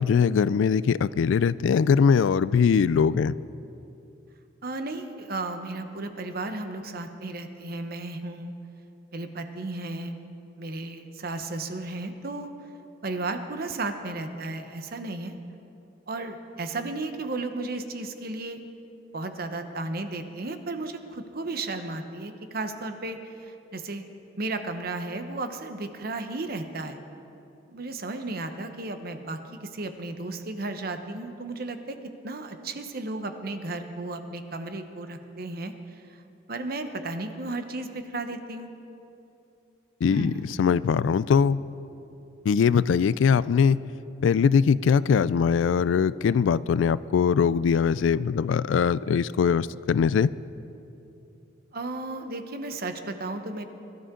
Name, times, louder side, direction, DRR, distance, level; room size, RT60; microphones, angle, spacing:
voice 1, 0.0-3.3 40.0-40.3 40.6-41.6 42.5-43.8 44.2-50.3, left 6 dB, 80° left, 18 dB, 0.3 m, -21 dB
voice 2, 4.6-8.5 9.1-10.2 10.6-12.5 13.0-15.3 16.1-18.6 19.1-24.0 24.4-27.0 27.7-29.4 29.7-32.0 32.2-35.7 36.5-38.7 40.1-40.5 51.7-53.6, right 2 dB, 50° right, 7 dB, 1.0 m, -34 dB
22.0 x 12.5 x 3.8 m, 2.8 s
head